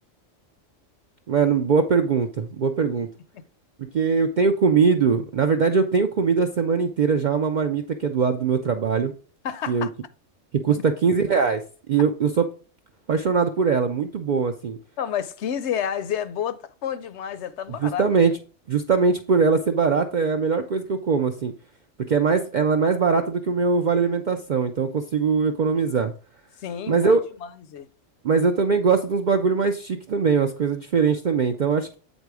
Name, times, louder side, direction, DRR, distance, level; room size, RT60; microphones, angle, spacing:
voice 1, 1.3-3.1 3.9-9.1 9.7-9.9 10.6-11.6 11.9-12.5 13.1-14.8 17.8-18.3 18.7-21.5 22.1-26.1 26.9-27.2 28.2-32.0, right 5 dB, 60° right, 0.5 m, -21 dB
voice 2, 9.4-9.9 10.7-10.8 15.0-18.0 26.6-27.2 27.4-27.9, left 9 dB, 70° left, 0.8 m, -30 dB
8.1 x 4.0 x 4.7 m
omnidirectional pair, 1.3 m